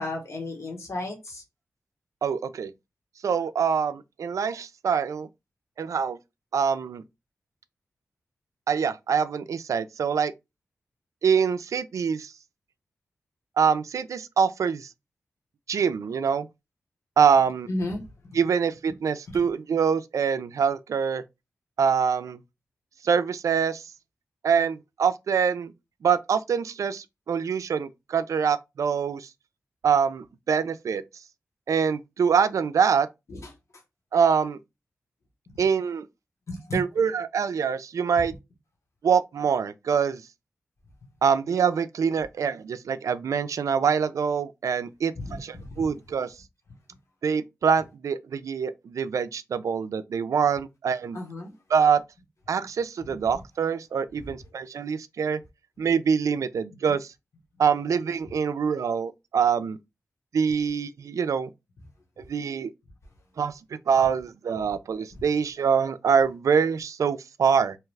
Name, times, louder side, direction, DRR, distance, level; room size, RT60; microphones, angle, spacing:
voice 1, 0.0-1.4 17.7-18.0 19.3-19.4 33.3-33.4 35.5-35.6 36.5-36.8 45.1-45.8 51.1-51.5, left 2 dB, 60° left, 1.1 m, -33 dB
voice 2, 2.2-2.7 3.2-5.3 5.8-6.2 6.5-7.0 8.7-10.3 11.2-12.3 13.6-14.9 15.7-16.5 17.2-17.7 18.3-21.2 21.8-22.4 23.0-23.9 24.4-25.7 26.0-29.3 29.8-31.0 31.7-33.1 34.1-34.6 35.6-36.1 36.7-38.3 39.0-40.2 41.2-46.3 47.2-51.2 51.7-52.0 52.5-55.4 55.8-57.1 57.6-59.8 60.3-61.5 62.3-62.7 63.4-67.8, right 6 dB, 70° right, 0.3 m, -24 dB
2.8 x 2.3 x 3.2 m
cardioid pair, 50°, 6 cm